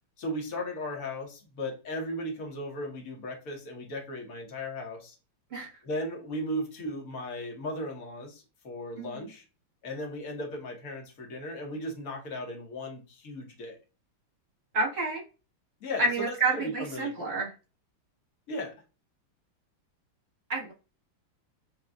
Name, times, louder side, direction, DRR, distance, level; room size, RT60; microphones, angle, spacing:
voice 1, 0.2-5.2 5.8-9.4 9.8-13.8 15.8-17.4 18.5-18.7, left 1 dB, 50° left, 1 dB, 1.2 m, -36 dB
voice 2, 14.7-15.2 16.0-17.5 20.5-20.7, right 3 dB, 35° right, -2 dB, 1.1 m, -29 dB
6.3 x 2.3 x 2.3 m, 0.32 s
omnidirectional pair, 2.3 m